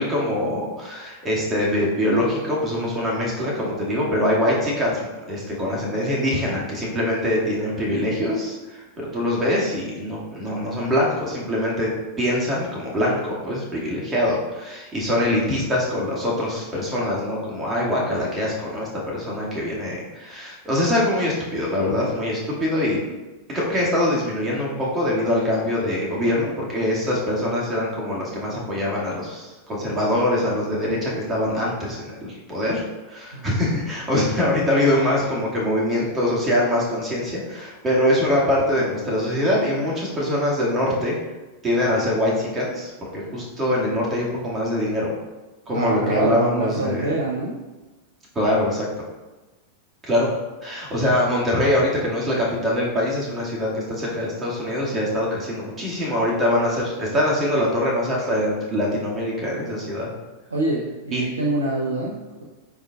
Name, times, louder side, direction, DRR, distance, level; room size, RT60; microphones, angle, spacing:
voice 1, 0.0-5.0 5.3-11.9 12.2-23.0 23.5-41.1 41.6-45.2 45.7-47.1 48.3-48.9 50.0-50.3 50.6-60.1 61.1-61.2, left 1 dB, 20° right, -5 dB, 2.2 m, -23 dB
voice 2, 33.3-33.8 45.7-47.6 60.5-62.4, right 2 dB, 75° right, -3 dB, 0.9 m, -26 dB
9.3 x 4.7 x 2.4 m, 1.1 s
figure-of-eight pair, 90°, 0 cm